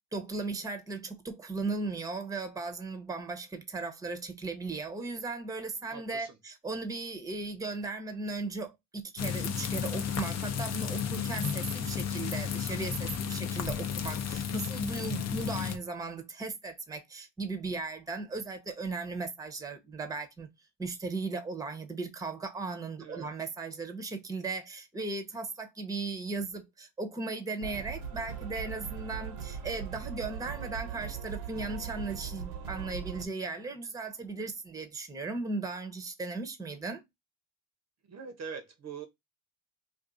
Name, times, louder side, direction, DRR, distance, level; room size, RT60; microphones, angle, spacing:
voice 1, 0.1-20.5 20.8-37.0, right 3 dB, 10° right, 0.7 m, -37 dB
voice 2, 5.9-6.4 15.2-15.6 23.0-23.4 38.0-39.1, right 6 dB, 40° right, 0.7 m, -43 dB
sound 1, 9.2-15.8, left 7 dB, 40° left, 0.6 m, -33 dB
sound 2, 27.6-33.2, right 7 dB, 80° right, 0.9 m, -39 dB
2.5 x 2.5 x 3.7 m
supercardioid pair, 80°, 40 cm